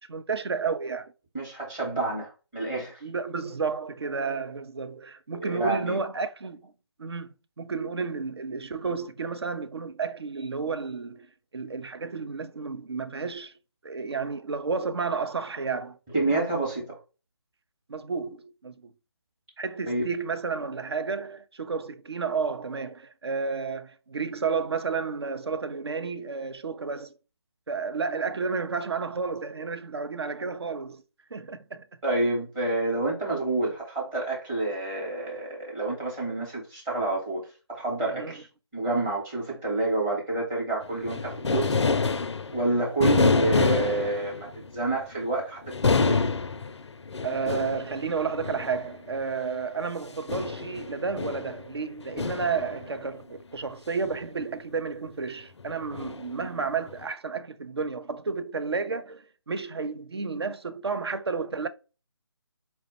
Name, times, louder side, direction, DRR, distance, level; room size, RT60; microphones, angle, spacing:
voice 1, 0.1-1.1 3.0-6.7 7.0-11.3 11.5-13.5 13.8-16.0 16.3-16.4 17.9-18.9 19.6-27.1 27.7-31.0 31.3-31.9 38.1-38.4 43.2-43.3 47.2-61.7, right 5 dB, 65° right, 0.5 m, -31 dB
voice 2, 1.3-3.0 5.3-6.0 16.1-17.0 19.9-20.1 32.0-38.5 38.7-41.7 42.5-46.3, right 2 dB, 10° right, 0.8 m, -28 dB
sound 1, 40.8-44.8 45.7-49.3 50.3-53.1 54.1-54.3 55.6-56.5 56.9-57.0, left 4 dB, 75° left, 0.4 m, -27 dB
4.3 x 2.1 x 4.0 m
figure-of-eight pair, 155°, 14 cm